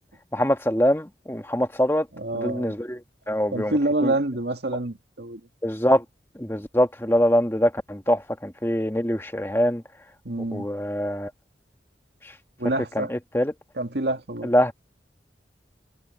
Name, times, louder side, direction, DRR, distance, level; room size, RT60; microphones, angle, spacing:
voice 1, 0.3-2.1 2.3-3.0 3.3-3.7 4.0-4.1 5.6-6.0 6.4-9.8 10.5-11.3 12.9-13.5 14.4-14.7, equal, 15° left, 1.3 m, -23 dB
voice 2, 2.1-2.8 3.5-5.4 10.3-10.7 12.6-13.1 13.8-14.5, right 2 dB, 75° right, 2.0 m, -27 dB
head